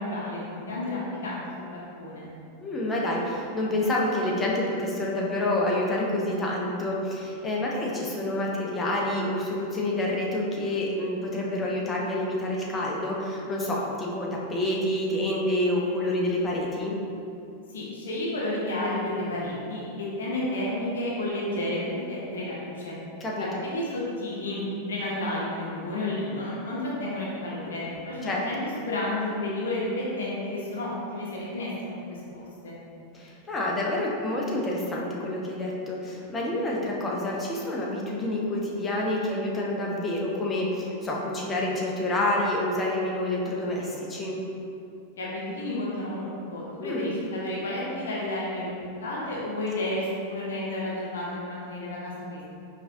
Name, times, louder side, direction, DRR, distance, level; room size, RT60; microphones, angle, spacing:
voice 1, 0.0-2.3 17.7-23.0 23.4-32.7 45.2-48.7 49.0-52.4, left 1 dB, 65° left, -5 dB, 0.8 m, -31 dB
voice 2, 2.6-17.0 23.2-23.7 28.2-28.4 33.1-44.4 46.8-47.1, left 1 dB, 15° left, -3 dB, 0.6 m, -28 dB
4.9 x 2.4 x 2.6 m, 2.6 s
figure-of-eight pair, 90°, 0 cm